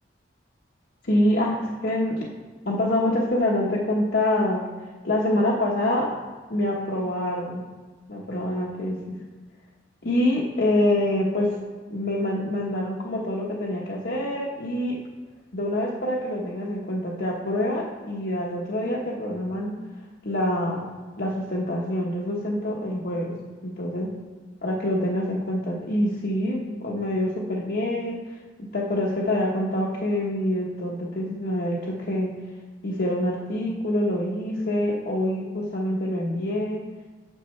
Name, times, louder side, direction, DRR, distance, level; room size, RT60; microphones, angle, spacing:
voice 1, 1.0-2.3 2.6-4.7 5.0-6.1 6.5-7.6 8.1-9.2 10.0-11.6 11.9-15.0 15.5-19.8 20.2-20.8 21.2-23.3 23.6-24.1 24.6-32.3 32.8-36.9, left 1 dB, 60° left, -5 dB, 1.1 m, -26 dB
10.0 x 7.1 x 3.2 m, 1.4 s
head